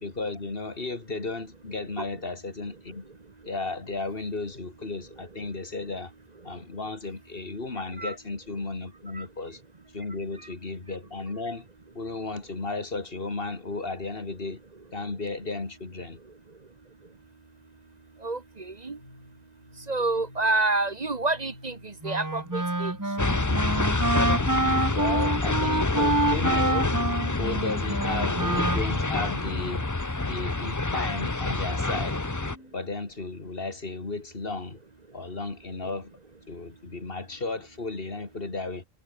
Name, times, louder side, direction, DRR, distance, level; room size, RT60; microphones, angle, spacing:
voice 1, 0.0-3.1 3.5-6.1 6.4-9.6 9.9-11.7 11.9-14.6 14.9-16.2 24.9-27.0 27.4-30.0 30.2-32.2 32.7-34.8 35.1-36.1 36.5-38.8, left 3 dB, 60° left, 2.7 m, -34 dB
voice 2, 18.2-19.0 19.9-22.9, right 2 dB, 40° right, 1.3 m, -28 dB
sound 1, 18.9-24.9 26.9-32.9, left 1 dB, 85° left, 7.4 m, -51 dB
Wind instrument woodwind instrument, 22.0-29.3, right 2 dB, 20° right, 1.4 m, -27 dB
sound 2, 23.2-32.6, left 2 dB, 20° left, 0.9 m, -27 dB
omnidirectional pair, 1.1 m